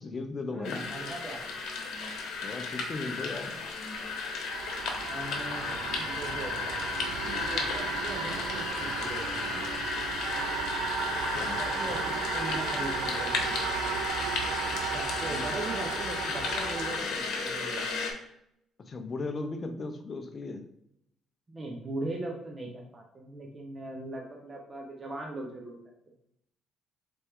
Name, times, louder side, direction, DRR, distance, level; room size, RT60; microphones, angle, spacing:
voice 1, 0.0-0.9 2.4-3.6 7.2-7.5 11.3-12.2 15.3-15.4 18.8-20.7, left 3 dB, 35° left, 7 dB, 0.5 m, -37 dB
voice 2, 0.5-1.4 5.0-6.5 7.3-9.4 11.5-13.9 14.9-18.2 21.5-25.8, right 2 dB, 25° right, 0 dB, 0.7 m, -40 dB
sound 1, 0.6-18.1, left 4 dB, 75° left, 0.9 m, -34 dB
sound 2, 4.5-17.0, right 7 dB, 90° right, 0.4 m, -35 dB
4.0 x 3.4 x 3.5 m, 0.76 s
cardioid pair, 120°, 0 cm